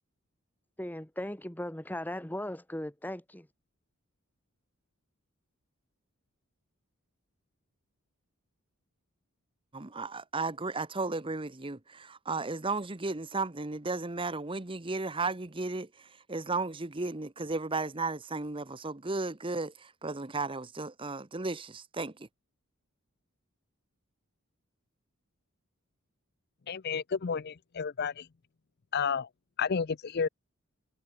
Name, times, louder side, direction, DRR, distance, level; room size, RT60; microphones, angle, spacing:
voice 1, 0.8-3.5, left 1 dB, 10° left, 1.7 m, -38 dB
voice 2, 9.7-22.3, right 3 dB, 25° right, 1.0 m, -34 dB
voice 3, 26.7-28.3 28.9-29.3 29.6-30.3, left 6 dB, 50° left, 0.5 m, -31 dB
head